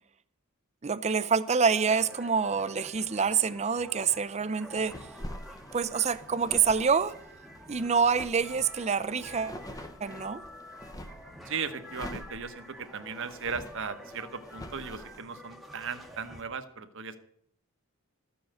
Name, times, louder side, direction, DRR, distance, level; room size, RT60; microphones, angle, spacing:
voice 1, 0.8-4.9 5.7-7.2 7.7-9.6 10.0-10.4, right 6 dB, 30° right, 0.5 m, -26 dB
sound 1, 1.7-16.4, equal, ahead, 1.0 m, -49 dB
sound 2, 4.7-11.3 11.8-15.2, left 1 dB, 15° left, 0.7 m, -45 dB
voice 2, 11.4-17.2, right 5 dB, 60° right, 1.1 m, -37 dB
14.0 x 7.1 x 7.7 m
head